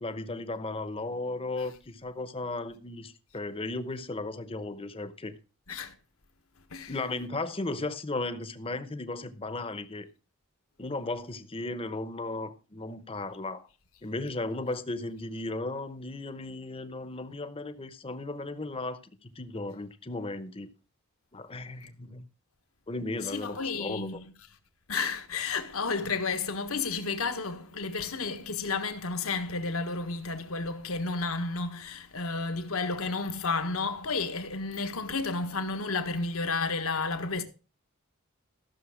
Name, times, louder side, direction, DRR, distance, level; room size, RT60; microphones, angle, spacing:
voice 1, 0.0-5.3 6.9-10.1 10.8-13.7 14.0-20.7 21.3-22.3 22.9-24.2, left 2 dB, 25° left, 0.9 m, -35 dB
voice 2, 23.2-24.3 24.9-37.4, left 4 dB, 80° left, 1.5 m, -32 dB
14.5 x 6.7 x 5.0 m
head